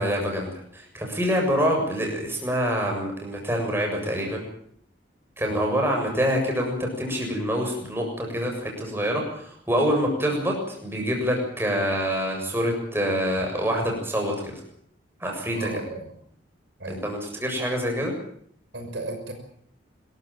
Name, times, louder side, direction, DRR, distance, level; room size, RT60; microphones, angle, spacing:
voice 1, 0.0-4.4 5.4-14.5 15.2-15.7 16.9-18.1, equal, 10° right, 1 dB, 7.4 m, -26 dB
voice 2, 15.5-16.1 16.8-17.1 18.7-19.3, right 2 dB, 65° right, 4 dB, 6.0 m, -35 dB
26.0 x 15.0 x 9.0 m, 0.64 s
head